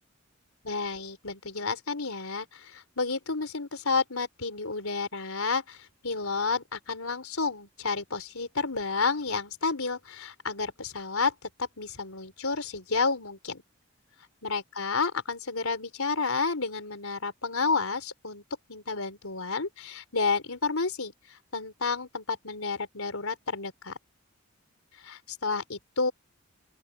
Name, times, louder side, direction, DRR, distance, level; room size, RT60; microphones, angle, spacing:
voice 1, 0.6-11.3 11.6-13.6 14.4-18.4 18.7-24.0 25.0-26.1, left 4 dB, 85° left, 4.0 m, -31 dB
open air
head